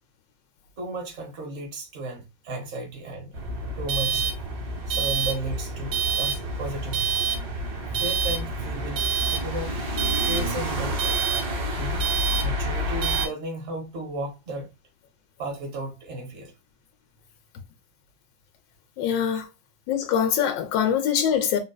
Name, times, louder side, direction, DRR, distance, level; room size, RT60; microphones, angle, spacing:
voice 1, 0.8-3.4 3.8-4.3 4.9-7.2 8.0-9.0 9.3-9.7 10.2-11.2 11.8-12.1 12.4-14.7 15.4-16.5, right 1 dB, 45° right, 1.2 m, -34 dB
sound 1, 3.3-13.3, right 3 dB, 75° right, 1.9 m, -27 dB
voice 2, 19.0-19.5 19.9-21.6, left 8 dB, 80° left, 1.3 m, -23 dB
3.9 x 2.5 x 2.2 m
omnidirectional pair, 2.0 m